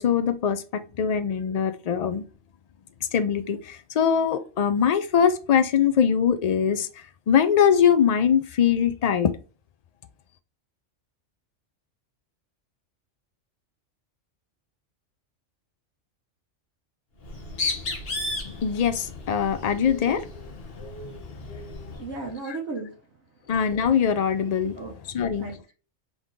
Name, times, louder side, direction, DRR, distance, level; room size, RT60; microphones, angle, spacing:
voice 1, 0.0-2.2 3.1-6.9 7.3-9.3 18.5-20.3 22.5-22.6 23.5-24.8 25.1-25.5, left 8 dB, 75° left, 0.3 m, -22 dB
Bird, 17.2-22.0, left 2 dB, 50° left, 1.3 m, -34 dB
voice 2, 22.0-23.0 24.7-25.7, right 3 dB, 65° right, 1.3 m, -36 dB
3.9 x 3.5 x 3.1 m
omnidirectional pair, 1.3 m